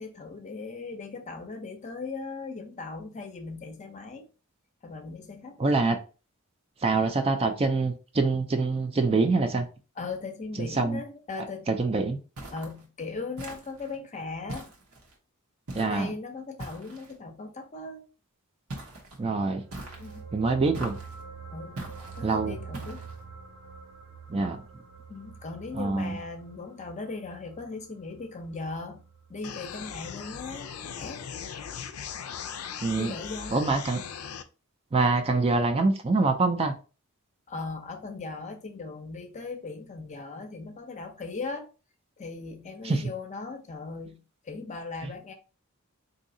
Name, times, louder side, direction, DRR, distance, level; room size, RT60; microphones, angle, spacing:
voice 1, 0.0-4.3 4.8-5.6 10.0-11.7 12.5-14.7 15.7-18.1 20.0-20.2 21.5-21.8 22.1-23.1 25.1-29.0 29.3-31.2 33.0-33.6 37.5-41.7 42.2-45.3, left 3 dB, 35° left, 0.6 m, -38 dB
voice 2, 5.6-6.0 6.8-9.6 10.6-11.0 11.7-12.2 15.7-16.1 19.2-19.6 20.3-21.0 22.2-22.6 24.3-24.6 25.8-26.2 32.8-33.1 33.5-34.0 34.9-36.7 42.8-43.0, right 3 dB, 25° right, 0.4 m, -25 dB
sound 1, 12.4-12.8 13.4-13.9 14.5-15.1 15.7-16.1 16.6-17.2 18.7-19.2 19.7-20.2 20.7-21.2 21.8-22.2 22.7-23.2, right 1 dB, 85° right, 1.0 m, -41 dB
sound 2, 19.5-30.0 30.3-30.5, right 5 dB, 65° right, 0.7 m, -46 dB
sound 3, 29.4-34.4, left 7 dB, 80° left, 0.4 m, -39 dB
3.9 x 2.7 x 2.6 m
head